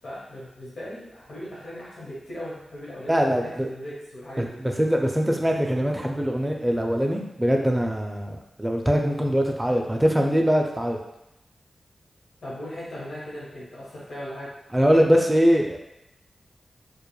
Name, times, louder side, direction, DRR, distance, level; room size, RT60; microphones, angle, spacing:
voice 1, 0.0-4.6 12.4-14.5, equal, 80° left, -8 dB, 1.0 m, -38 dB
voice 2, 3.1-3.7 4.4-11.0 14.7-15.8, equal, 10° right, 2 dB, 0.4 m, -22 dB
2.3 x 2.1 x 3.1 m, 0.88 s
wide cardioid pair, 75°, 0 cm